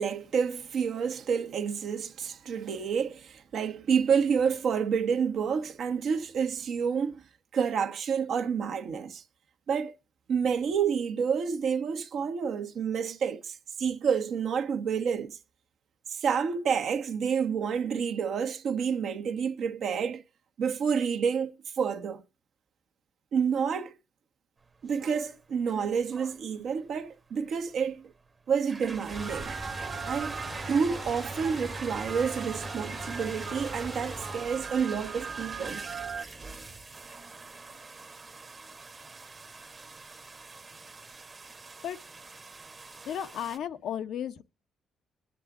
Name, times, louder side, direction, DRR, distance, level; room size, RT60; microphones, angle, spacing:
voice 1, 0.0-7.2 7.5-9.2 9.7-9.9 10.3-15.4 16.1-20.2 20.6-22.2 23.3-23.9 24.8-28.1 28.5-29.5 30.0-30.4 30.7-35.8, right 6 dB, 65° right, 1.2 m, -29 dB
sound 1, 24.6-43.6, right 3 dB, 30° right, 1.1 m, -45 dB
sound 2, 29.1-34.4, left 2 dB, 25° left, 0.8 m, -42 dB
sound 3, 29.1-36.2, right 6 dB, 50° right, 0.8 m, -40 dB
voice 2, 43.0-44.4, left 9 dB, 75° left, 0.8 m, -34 dB
21.5 x 7.5 x 3.7 m
cardioid pair, 90°, 0 cm